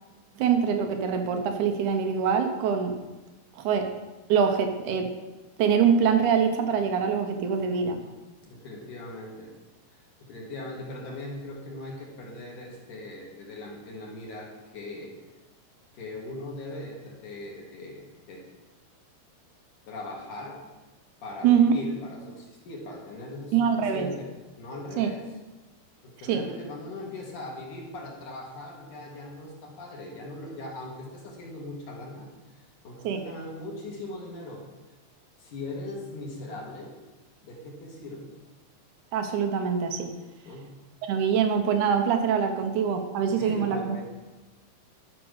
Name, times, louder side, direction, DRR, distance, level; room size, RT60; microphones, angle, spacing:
voice 1, 0.4-3.0 3.6-3.9 4.3-5.1 5.6-8.0 21.4-21.7 23.5-24.1 25.0-25.1 26.3-26.4 33.0-33.2 39.1-40.1 41.0-44.0, right 7 dB, 75° right, 6 dB, 1.8 m, -24 dB
voice 2, 8.4-9.5 9.9-15.2 15.9-18.4 19.9-20.6 21.2-24.3 24.6-25.2 26.0-32.3 32.8-34.6 35.4-37.0 37.4-38.3 40.4-40.7 43.3-44.0, left 2 dB, 60° left, -2 dB, 2.9 m, -40 dB
12.5 x 6.1 x 6.4 m, 1.1 s
omnidirectional pair, 4.6 m